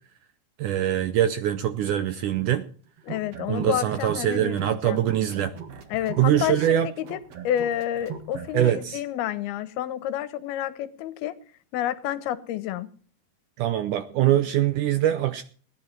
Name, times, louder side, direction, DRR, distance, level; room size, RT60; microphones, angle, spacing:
voice 1, 0.6-2.6 3.5-5.5 6.2-6.9 8.5-9.0 13.6-15.4, right 12 dB, 75° right, 11 dB, 1.9 m, -23 dB
voice 2, 3.0-5.0 5.9-11.4 11.7-12.9, left 11 dB, 85° left, 14 dB, 2.9 m, -29 dB
sound 1, 3.0-4.8 5.1-8.8, right 8 dB, 50° right, 2.3 m, -39 dB
17.5 x 10.5 x 4.5 m, 0.43 s
omnidirectional pair, 4.4 m